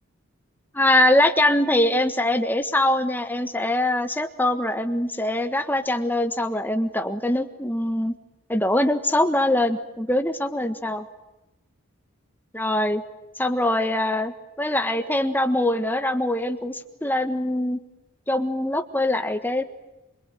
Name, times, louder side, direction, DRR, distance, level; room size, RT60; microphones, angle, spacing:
voice 1, 0.7-8.1 8.5-11.1 12.5-13.0 13.4-17.8 18.3-19.6, left 1 dB, 10° left, 8 dB, 1.6 m, -23 dB
26.5 x 24.0 x 9.2 m, 0.96 s
head